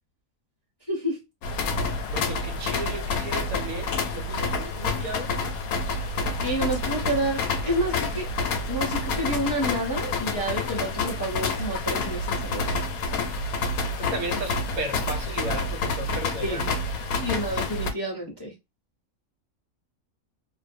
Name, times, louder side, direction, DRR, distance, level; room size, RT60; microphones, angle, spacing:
voice 1, 0.9-1.2 6.4-8.3 8.7-12.8 16.4-16.7 17.2-18.5, right 1 dB, 30° left, 0.5 m, -29 dB
sound 1, 1.4-17.9, left 3 dB, 80° left, 1.0 m, -28 dB
voice 2, 2.1-5.3 14.0-16.7, right 2 dB, 85° right, 1.1 m, -35 dB
2.5 x 2.3 x 2.5 m
omnidirectional pair, 1.5 m